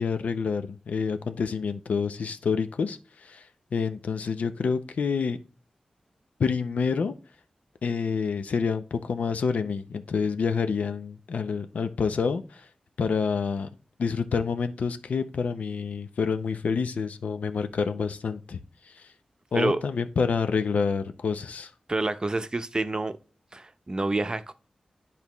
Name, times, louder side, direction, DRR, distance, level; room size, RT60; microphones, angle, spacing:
voice 1, 0.0-3.4 3.7-5.4 6.4-7.1 7.8-12.6 13.0-13.7 14.0-18.6 19.5-21.7, left 5 dB, 85° left, 0.6 m, -28 dB
voice 2, 21.9-23.2 23.5-24.5, right 2 dB, 35° right, 0.6 m, -28 dB
10.5 x 4.1 x 3.0 m
cardioid pair, 65°, 2 cm